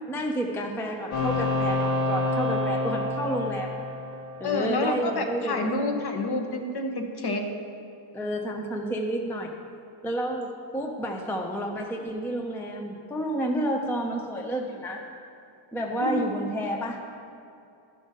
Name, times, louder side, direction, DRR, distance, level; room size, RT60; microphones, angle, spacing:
voice 1, 0.1-3.8 4.4-5.7 8.1-9.5 10.0-15.0 15.7-17.0, right 1 dB, 5° left, 2 dB, 0.4 m, -30 dB
sound 1, 1.1-4.8, left 2 dB, 70° left, 1.8 m, -28 dB
voice 2, 4.4-7.4 16.0-16.2, left 2 dB, 50° left, 4 dB, 1.0 m, -28 dB
11.0 x 5.3 x 6.3 m, 2.5 s
wide cardioid pair, 160°, 49 cm